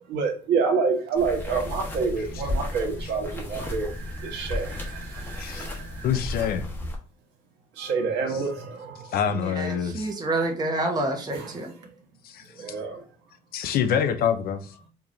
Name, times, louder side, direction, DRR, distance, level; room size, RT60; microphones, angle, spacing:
voice 1, 0.1-6.1 7.7-9.1 11.3-11.6 12.5-13.0, right 5 dB, 85° right, 1.4 m, -28 dB
sound 1, 1.1-6.9, left 1 dB, 10° left, 1.3 m, -34 dB
voice 2, 5.4-5.7 6.0-6.7 9.1-10.1 12.2-12.5 13.5-14.7, left 8 dB, 65° left, 0.6 m, -26 dB
voice 3, 9.3-11.7, right 2 dB, 25° right, 1.0 m, -28 dB
4.6 x 2.9 x 2.6 m
cardioid pair, 110°, 17 cm